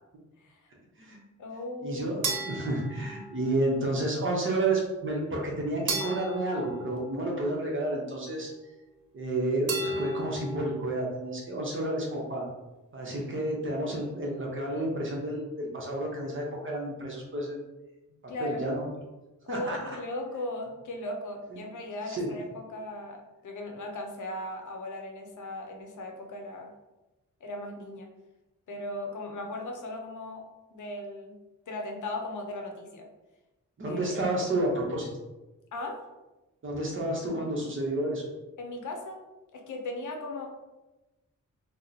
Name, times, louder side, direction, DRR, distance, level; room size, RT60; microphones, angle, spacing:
voice 1, 0.4-0.7 1.4-2.1 18.3-18.6 19.4-26.7 27.4-28.1 28.7-30.4 30.7-31.4 31.7-33.1 33.9-34.0 35.7-36.0 38.6-39.2 39.5-40.5, left 1 dB, 75° left, 2 dB, 0.6 m, -37 dB
voice 2, 1.8-8.5 9.1-12.4 12.9-17.6 18.4-18.9 19.5-20.0 21.5-21.6 22.1-22.3 33.8-35.1 36.6-38.2, right 1 dB, 40° right, -1 dB, 0.7 m, -30 dB
sound 1, 2.2-3.7 5.9-7.7 9.7-10.8, right 3 dB, 85° right, 0.7 m, -34 dB
2.9 x 2.0 x 3.8 m, 1.1 s
wide cardioid pair, 155°, 30 cm